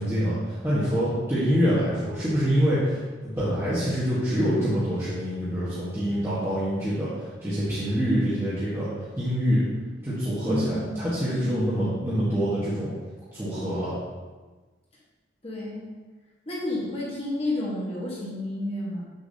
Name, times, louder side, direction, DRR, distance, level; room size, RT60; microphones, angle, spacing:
voice 1, 0.0-7.1 7.4-8.9 9.2-9.7 10.0-12.9 13.3-13.9, equal, 15° right, -11 dB, 1.2 m, -25 dB
voice 2, 10.4-10.9 11.3-11.6 15.4-15.9 16.5-19.0, left 1 dB, 30° left, -6 dB, 1.3 m, -31 dB
7.1 x 6.5 x 2.7 m, 1.3 s
head